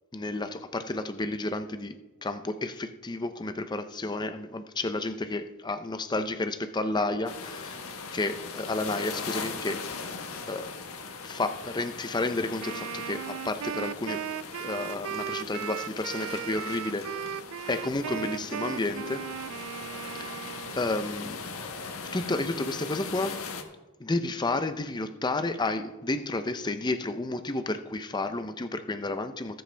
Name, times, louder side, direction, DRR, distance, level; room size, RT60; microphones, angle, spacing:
voice 1, 0.1-7.8 8.1-9.8 10.5-10.7 11.2-14.2 14.6-17.4 17.7-19.2 20.1-20.4 20.7-21.4 22.1-23.4 24.0-29.6, left 2 dB, 20° left, 9 dB, 0.6 m, -31 dB
sound 1, 7.3-23.6, left 4 dB, 80° left, 1.2 m, -40 dB
Wind instrument woodwind instrument, 12.6-21.0, right 10 dB, 65° right, 0.3 m, -37 dB
19.5 x 7.7 x 3.4 m, 1.1 s
head